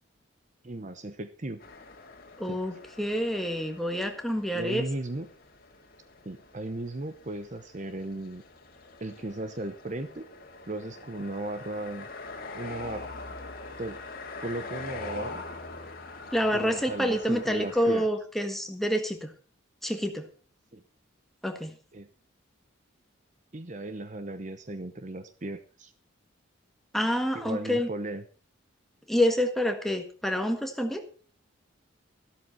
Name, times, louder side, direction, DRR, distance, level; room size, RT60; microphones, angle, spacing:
voice 1, 0.6-1.6 2.5-2.6 4.5-5.3 6.2-8.4 9.0-10.3 10.7-12.1 12.5-13.1 13.8-14.0 14.4-15.4 16.5-18.1 20.7-20.8 21.9-22.1 23.5-25.9 27.3-28.2, right 2 dB, 35° right, 11 dB, 0.9 m, -36 dB
sound 1, 1.6-18.1, left 3 dB, 45° left, 2.5 m, -44 dB
voice 2, 2.4-4.8 16.3-19.3 19.8-20.3 21.4-21.7 26.9-27.9 29.1-31.0, equal, ahead, 5 dB, 1.7 m, -27 dB
14.0 x 12.5 x 4.3 m, 0.39 s
head